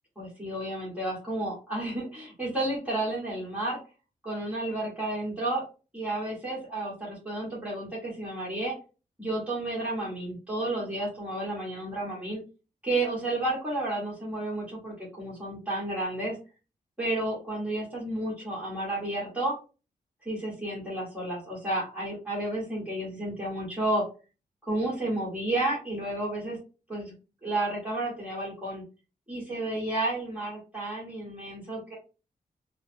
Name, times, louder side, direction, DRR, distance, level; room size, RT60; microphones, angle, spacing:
voice 1, 0.1-3.8 4.2-5.6 5.9-8.7 9.2-12.4 12.8-16.4 17.0-19.5 20.2-24.0 24.6-26.6 26.9-27.1 27.4-28.8 29.3-31.9, right 1 dB, 10° right, -7 dB, 1.7 m, -31 dB
3.8 x 2.2 x 2.7 m, 0.32 s
wide cardioid pair, 125°, 15 cm